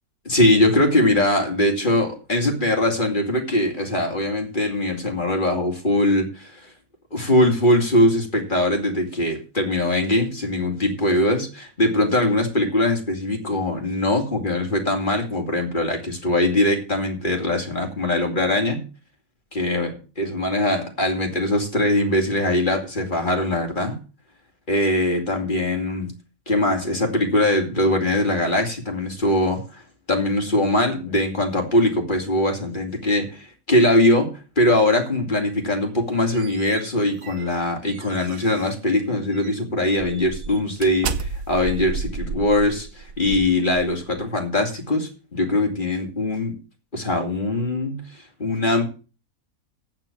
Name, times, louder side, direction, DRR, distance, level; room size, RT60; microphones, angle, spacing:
voice 1, 0.2-6.6 7.1-18.8 19.5-24.0 24.7-26.1 26.5-29.8 30.1-46.6 46.9-48.9, left 1 dB, 35° left, 3 dB, 2.6 m, -21 dB
sound 1, 35.9-38.8 39.3-39.6 40.0-44.2, right 5 dB, 75° right, 1.2 m, -33 dB
8.9 x 7.6 x 7.2 m, 0.35 s
omnidirectional pair, 1.5 m